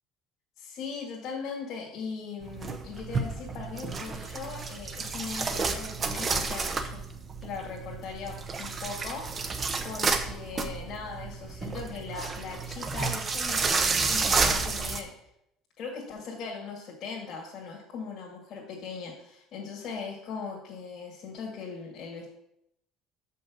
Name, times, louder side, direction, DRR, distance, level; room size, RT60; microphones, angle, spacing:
voice 1, 0.6-7.0 7.4-9.6 9.8-15.1 15.8-22.3, left 5 dB, 50° left, -3 dB, 1.9 m, -39 dB
sound 1, 2.4-15.0, right 4 dB, 30° right, 0.8 m, -31 dB
6.3 x 5.5 x 6.0 m, 0.78 s
cardioid pair, 115°, 0 cm